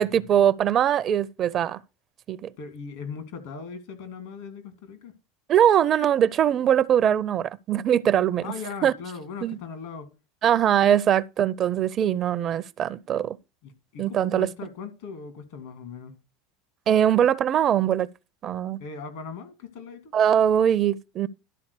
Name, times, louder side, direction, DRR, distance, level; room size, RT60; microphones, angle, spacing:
voice 1, 0.0-1.8 2.3-2.5 5.5-8.5 8.8-8.9 9.4-9.6 10.4-13.4 14.0-14.5 16.9-18.1 18.4-18.8 20.1-21.3, right 9 dB, 45° right, 0.4 m, -21 dB
voice 2, 2.6-5.1 8.4-10.1 13.6-16.1 18.8-20.1, left 5 dB, 70° left, 2.1 m, -39 dB
12.0 x 4.0 x 6.6 m
hypercardioid pair, 80°, 0 cm